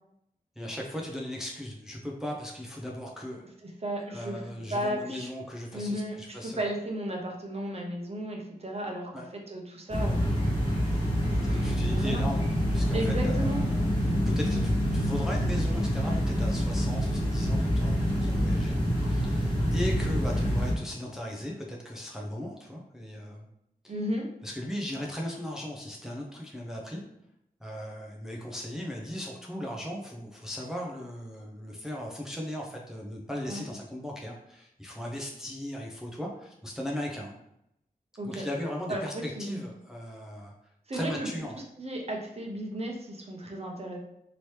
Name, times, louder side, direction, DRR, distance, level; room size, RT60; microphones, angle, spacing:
voice 1, 0.6-3.4 4.1-6.6 9.1-9.3 11.4-12.5 12.7-14.0 14.3-23.5 23.8-23.9 24.4-27.0 27.6-37.3 38.2-40.5 40.9-41.6, equal, 5° right, -2 dB, 0.5 m, -37 dB
voice 2, 3.8-4.4 4.7-5.3 5.7-10.3 10.9-12.2 12.9-13.6 23.9-24.3 33.5-33.6 38.2-38.4 38.9-39.6 40.9-41.3 41.5-44.0, right 1 dB, 40° right, 0 dB, 0.8 m, -34 dB
sound 1, 9.9-20.7, equal, 30° left, 1.3 m, -26 dB
3.0 x 2.9 x 3.2 m, 0.80 s
wide cardioid pair, 70°, 15 cm